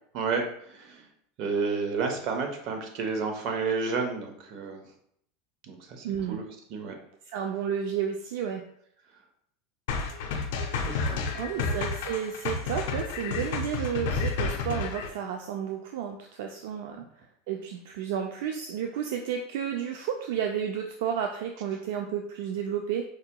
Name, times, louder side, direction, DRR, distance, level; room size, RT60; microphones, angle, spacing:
voice 1, 0.7-1.1 1.4-4.8 5.7-6.4 6.7-6.9 10.8-11.2 11.6-11.7, right 4 dB, 50° right, 4 dB, 0.7 m, -31 dB
voice 2, 6.0-6.4 7.3-8.6 11.3-17.0 17.5-23.0, right 8 dB, 75° right, 3 dB, 0.3 m, -32 dB
sound 1, 9.9-15.1, left 4 dB, 75° left, 0.5 m, -30 dB
4.7 x 2.7 x 2.2 m, 0.68 s
supercardioid pair, 140°, 0 cm